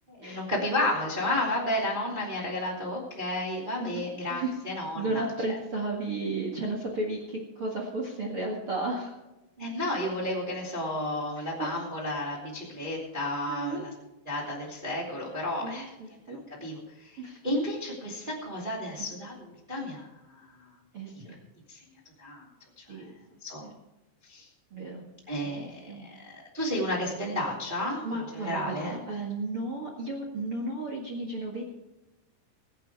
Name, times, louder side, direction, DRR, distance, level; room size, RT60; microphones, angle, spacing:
voice 1, 0.1-5.2 9.6-13.9 14.2-15.9 16.3-20.5 21.1-21.3 21.7-21.8 22.2-22.4 22.8-23.1 23.4-23.6 24.2-24.5 25.3-28.0 28.3-29.0, left 1 dB, 15° right, -3 dB, 1.7 m, -32 dB
voice 2, 4.9-9.1 11.4-11.8 13.5-13.8 15.6-16.4 17.2-17.4 20.9-21.4 22.9-23.2 23.6-23.7 24.7-25.0 25.4-26.0 28.0-31.6, right 2 dB, 55° right, -1 dB, 1.6 m, -34 dB
21.0 x 8.4 x 4.8 m, 1.0 s
omnidirectional pair, 5.5 m